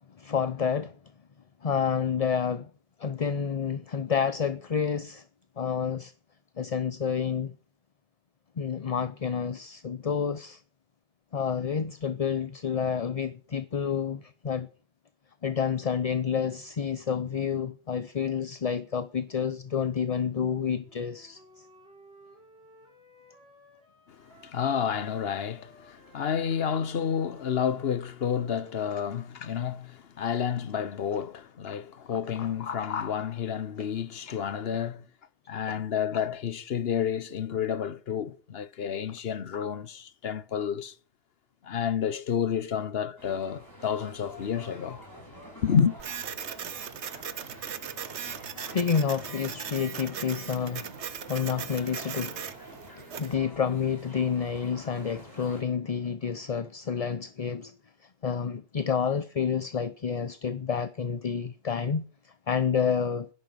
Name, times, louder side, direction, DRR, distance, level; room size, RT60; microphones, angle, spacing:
voice 1, 0.2-1.0 1.6-2.7 3.0-5.2 5.6-6.1 6.6-7.6 8.6-10.6 11.3-14.7 15.4-21.7 32.1-32.5 35.7-35.8 48.2-51.0 51.3-52.4 53.0-57.7 58.2-63.3, left 7 dB, 40° left, 0.7 m, -29 dB
Wind instrument woodwind instrument, 20.8-24.6 24.9-28.9, right 1 dB, 60° right, 5.1 m, -56 dB
voice 2, 24.2-35.1 35.5-40.9 41.6-45.0 45.6-45.9, left 8 dB, 60° left, 1.0 m, -30 dB
sound 1, 43.2-55.6, equal, 20° left, 6.9 m, -48 dB
Printer, 46.0-53.3, right 8 dB, 75° right, 1.2 m, -39 dB
11.0 x 11.0 x 7.8 m
omnidirectional pair, 1.2 m